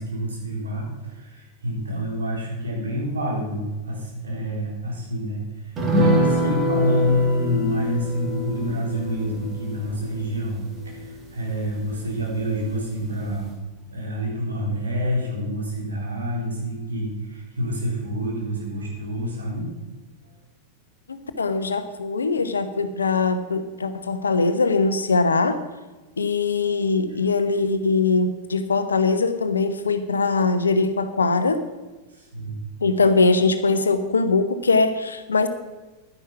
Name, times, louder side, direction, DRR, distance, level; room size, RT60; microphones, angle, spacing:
voice 1, 0.0-13.5 13.9-19.7 32.1-32.6, equal, 75° right, -2 dB, 4.0 m, -27 dB
sound 1, 5.8-12.6 12.9-13.0 13.3-13.5, right 1 dB, 25° right, 2.7 m, -26 dB
voice 2, 21.1-25.6 26.2-31.7 32.8-35.5, left 4 dB, 75° left, 10 dB, 1.0 m, -21 dB
11.5 x 10.0 x 5.9 m, 1.2 s
figure-of-eight pair, 90°, 0 cm